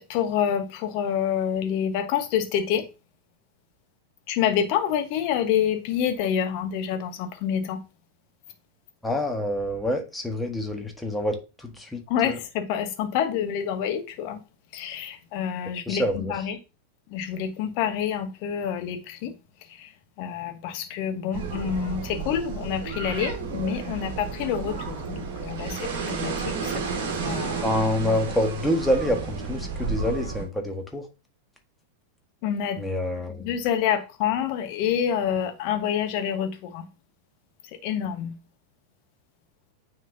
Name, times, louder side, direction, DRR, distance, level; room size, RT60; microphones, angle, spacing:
voice 1, 0.0-2.9 4.3-7.8 12.1-14.4 14.7-16.6 17.1-19.4 19.7-19.9 20.2-27.6 32.4-32.9 33.4-36.9 37.7-38.4, left 9 dB, 45° left, 1.2 m, -27 dB
voice 2, 9.0-12.4 15.9-16.3 27.6-31.1 32.8-33.4, left 1 dB, 5° left, 1.5 m, -27 dB
sound 1, 21.3-30.4, right 5 dB, 50° right, 1.5 m, -32 dB
9.3 x 3.7 x 2.7 m
figure-of-eight pair, 90°, 0 cm